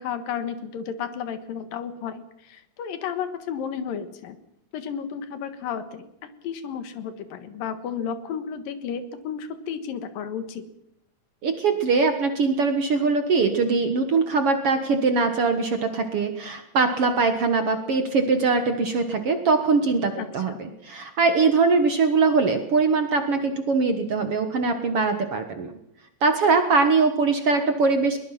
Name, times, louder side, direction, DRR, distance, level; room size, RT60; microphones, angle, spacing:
voice 1, 0.0-4.4 4.7-10.6 20.2-20.6, left 7 dB, 90° left, 10 dB, 3.2 m, -33 dB
voice 2, 11.4-25.7 26.2-28.2, right 4 dB, 55° right, 7 dB, 2.0 m, -22 dB
22.0 x 20.5 x 5.9 m, 0.83 s
omnidirectional pair, 3.9 m